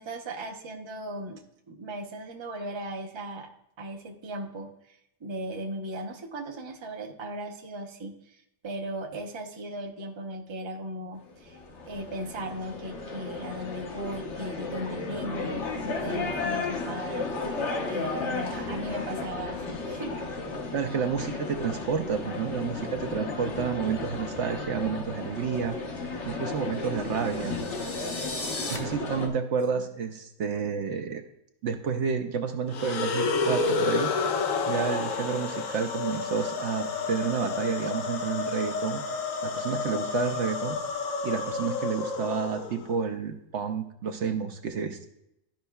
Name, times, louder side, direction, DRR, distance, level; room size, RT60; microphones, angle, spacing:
voice 1, 0.0-3.5 3.8-11.6 11.9-20.2 29.7-29.8, right 1 dB, 30° right, 2 dB, 0.6 m, -37 dB
sound 1, 11.3-29.3, left 3 dB, 65° left, 1.2 m, -34 dB
voice 2, 20.7-25.8 26.3-27.6 28.7-31.2 31.6-34.3 34.7-39.0 39.4-40.8 41.2-45.1, right 6 dB, 70° right, 6 dB, 0.9 m, -30 dB
sound 2, 26.9-28.8, left 2 dB, 30° left, 0.8 m, -37 dB
sound 3, 32.7-42.9, left 4 dB, 90° left, 1.2 m, -30 dB
12.0 x 5.3 x 2.3 m, 0.80 s
omnidirectional pair, 1.3 m